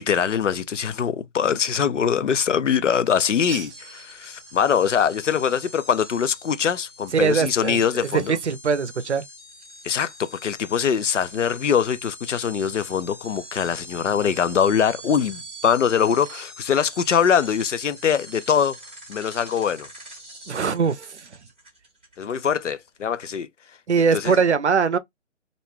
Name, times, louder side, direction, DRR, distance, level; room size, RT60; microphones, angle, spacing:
voice 1, 0.0-8.4 9.8-18.8 19.1-19.9 22.2-23.5 24.1-24.3, left 7 dB, 70° left, 0.5 m, -23 dB
sound 1, 3.7-22.8, equal, 10° right, 0.5 m, -44 dB
voice 2, 7.1-9.2 20.5-21.3 23.9-25.0, right 5 dB, 65° right, 0.6 m, -22 dB
2.5 x 2.2 x 3.2 m
figure-of-eight pair, 140°, 38 cm